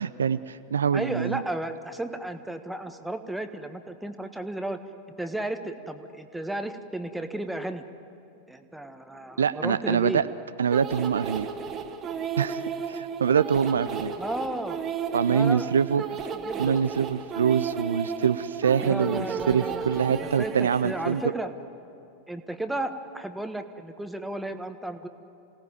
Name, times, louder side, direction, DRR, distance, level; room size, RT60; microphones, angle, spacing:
voice 1, 0.0-1.4 9.4-10.3 10.6-11.5 12.4-12.6 12.9-14.1 15.1-16.0 16.6-21.2, right 7 dB, 70° right, 13 dB, 0.5 m, -24 dB
voice 2, 0.9-4.8 5.2-7.8 8.5-10.2 14.2-14.8 15.3-15.7 16.3-16.8 18.8-19.8 20.2-21.5 22.3-25.1, right 1 dB, 5° right, 8 dB, 1.3 m, -33 dB
sound 1, 10.7-21.3, right 6 dB, 25° right, 1.7 m, -34 dB
26.5 x 18.0 x 9.5 m, 2.7 s
figure-of-eight pair, 90°, 0 cm